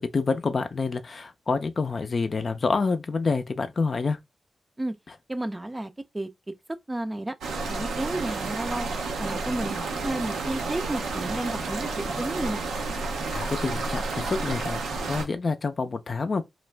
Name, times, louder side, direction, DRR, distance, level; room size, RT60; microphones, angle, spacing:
voice 1, 0.0-4.2 13.3-16.4, left 4 dB, 50° left, 0.4 m, -27 dB
voice 2, 5.3-6.3 6.9-7.3 7.7-8.9 9.2-12.6, right 1 dB, 20° right, 0.5 m, -32 dB
sound 1, 7.4-15.3, right 3 dB, 90° right, 0.6 m, -31 dB
2.4 x 2.1 x 3.2 m
cardioid pair, 50°, 0 cm